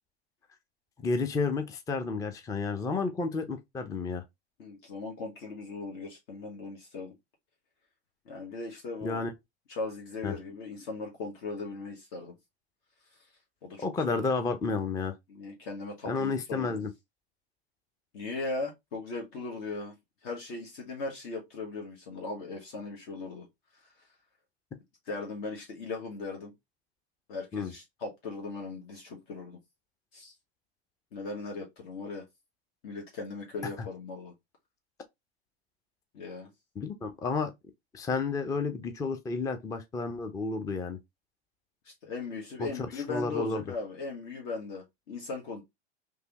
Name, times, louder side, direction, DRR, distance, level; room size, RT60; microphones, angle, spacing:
voice 1, 1.0-4.2 9.0-9.3 10.2-10.4 13.8-15.1 16.1-16.9 27.5-27.7 36.8-37.5 37.9-41.0 42.6-43.6, left 4 dB, 10° left, 0.4 m, -31 dB
voice 2, 4.6-7.1 8.2-9.2 9.7-12.4 13.1-13.2 13.6-14.2 15.3-16.8 18.1-19.9 20.2-23.5 23.8-23.9 25.0-26.5 27.3-29.6 30.1-30.3 31.1-32.3 32.8-34.3 36.1-36.5 41.8-45.6, left 3 dB, 60° left, 1.2 m, -38 dB
3.3 x 2.6 x 2.9 m
hypercardioid pair, 100°, 33 cm